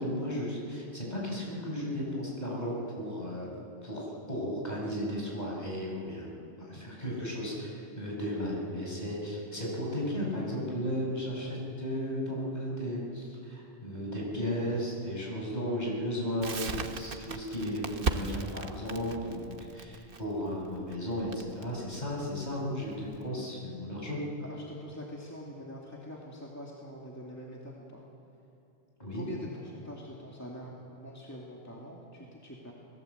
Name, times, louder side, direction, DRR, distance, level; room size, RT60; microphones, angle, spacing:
voice 1, 0.0-3.5 3.8-6.3 6.6-24.2 29.0-29.3, equal, 40° left, -3 dB, 6.2 m, -35 dB
Crackle, 16.4-23.2, right 4 dB, 55° right, 1.2 m, -37 dB
voice 2, 24.4-28.0 29.1-32.7, equal, 15° left, -3 dB, 2.5 m, -44 dB
29.0 x 20.0 x 8.1 m, 2.8 s
omnidirectional pair, 1.1 m